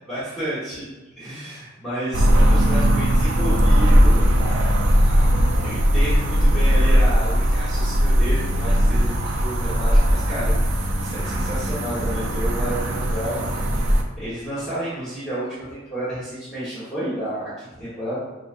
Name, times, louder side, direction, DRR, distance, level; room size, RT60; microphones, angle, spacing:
voice 1, 0.1-5.3 5.6-13.4 14.2-18.1, right 1 dB, ahead, -13 dB, 1.4 m, -31 dB
sound 1, 2.1-14.0, equal, 60° right, 0.5 m, -19 dB
5.8 x 2.5 x 2.5 m, 1.1 s
head